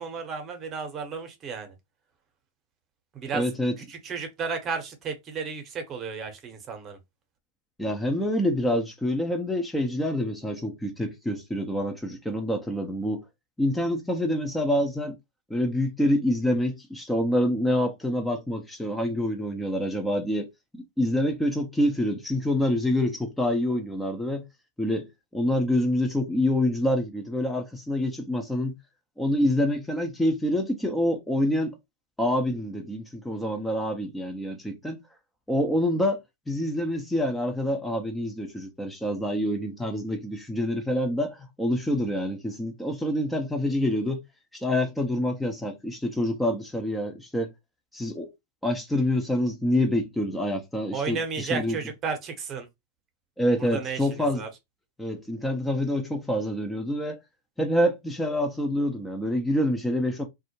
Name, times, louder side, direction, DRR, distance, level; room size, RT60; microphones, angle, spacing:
voice 1, 0.0-1.7 3.1-3.4 3.8-7.0 50.9-52.7 53.6-54.5, right 5 dB, 30° right, 0.8 m, -33 dB
voice 2, 3.3-3.7 7.8-13.2 13.6-15.2 15.5-20.5 21.0-24.5 24.8-28.8 29.2-31.7 32.2-35.0 35.5-36.2 36.5-44.2 44.5-47.5 47.9-48.3 48.6-51.8 53.4-54.4 55.0-57.2 57.6-60.3, left 1 dB, 5° left, 0.5 m, -26 dB
2.3 x 2.0 x 2.9 m
hypercardioid pair, 105°, 0 cm